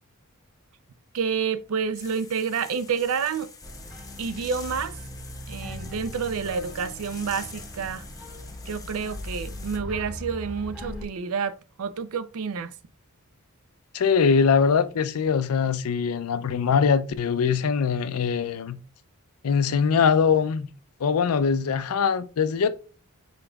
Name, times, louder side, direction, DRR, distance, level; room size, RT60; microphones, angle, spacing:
voice 1, 1.1-3.5 4.2-5.0 5.5-8.0 8.7-12.7, right 6 dB, 70° right, 0.4 m, -29 dB
sound 1, 1.9-9.8, left 5 dB, 15° left, 0.6 m, -46 dB
sound 2, 3.6-11.0, equal, 5° right, 0.9 m, -39 dB
voice 2, 13.9-18.8 19.4-20.7 21.0-22.7, left 6 dB, 75° left, 0.4 m, -22 dB
5.1 x 3.8 x 2.3 m
head